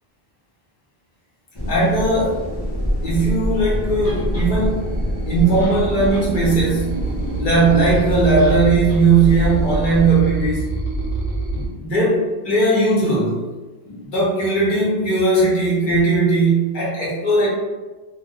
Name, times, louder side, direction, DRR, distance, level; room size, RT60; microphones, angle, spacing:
sound 1, 1.5-10.1, equal, 30° left, 0.6 m, -26 dB
voice 1, 1.7-2.5 3.0-7.0 7.4-10.7 11.5-13.4 13.8-17.5, right 3 dB, 50° left, -6 dB, 1.0 m, -18 dB
sound 2, 3.7-11.6, right 2 dB, 45° right, 0.7 m, -27 dB
sound 3, 4.0-4.5 5.3-5.4 5.6-6.3 6.7-6.8 8.4-8.6 8.9-9.0, left 1 dB, 75° left, 1.4 m, -39 dB
2.3 x 2.3 x 3.5 m, 1.2 s
omnidirectional pair, 1.1 m